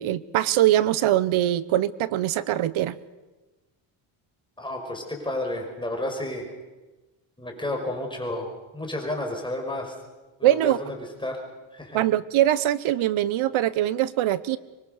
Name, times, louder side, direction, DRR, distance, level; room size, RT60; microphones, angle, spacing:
voice 1, 0.0-3.0 10.4-10.8 11.9-14.6, right 13 dB, 75° right, 16 dB, 1.3 m, -22 dB
voice 2, 4.6-6.5 7.4-8.5 8.7-10.0 10.4-11.0 11.2-11.4 11.7-12.0, left 1 dB, 10° left, 2 dB, 5.5 m, -31 dB
25.5 x 23.0 x 6.8 m, 1.2 s
cardioid pair, 125°, 48 cm